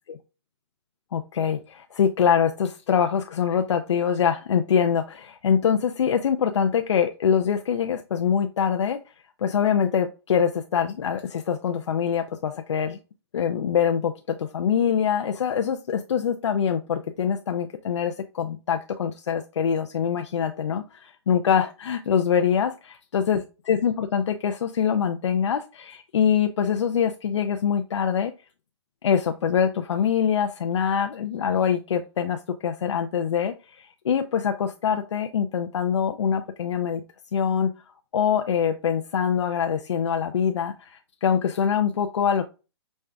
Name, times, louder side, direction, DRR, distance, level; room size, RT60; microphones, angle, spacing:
voice 1, 1.1-9.0 9.4-13.0 13.3-22.7 23.1-28.3 29.0-37.0 37.3-37.7 38.1-42.4, left 7 dB, 80° left, 6 dB, 0.5 m, -24 dB
5.3 x 3.3 x 2.4 m, 0.31 s
hypercardioid pair, 165°, 15 cm